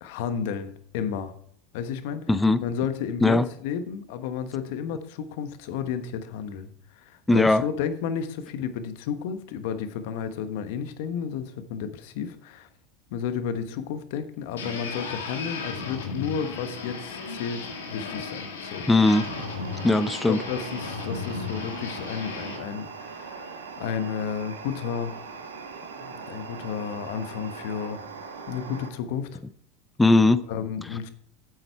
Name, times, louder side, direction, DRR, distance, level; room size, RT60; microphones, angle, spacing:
voice 1, 0.0-1.3 1.7-2.3 2.6-12.7 13.1-18.9 19.9-20.0 20.3-25.1 26.0-28.0 28.5-29.4 30.5-31.1, left 7 dB, 70° left, 10 dB, 1.1 m, -32 dB
voice 2, 2.3-2.6 3.2-3.5 7.3-7.6 18.9-19.3 19.8-20.4 30.0-30.4, left 2 dB, 10° left, 14 dB, 0.7 m, -19 dB
sound 1, 14.6-22.6, left 4 dB, 90° left, 2.1 m, -35 dB
sound 2, 19.0-28.9, right 5 dB, 90° right, 1.5 m, -40 dB
9.7 x 7.8 x 4.5 m, 0.69 s
hypercardioid pair, 90°, 0 cm